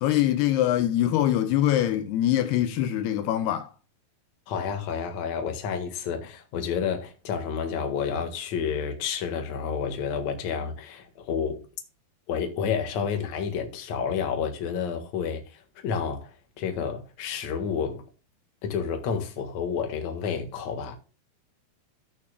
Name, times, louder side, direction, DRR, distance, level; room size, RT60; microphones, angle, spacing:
voice 1, 0.0-3.7, left 12 dB, 80° left, 2.7 m, -23 dB
voice 2, 4.5-11.6 12.3-16.3 16.6-18.0 18.6-20.9, left 6 dB, 55° left, 2.4 m, -30 dB
16.0 x 6.2 x 2.3 m
omnidirectional pair, 4.7 m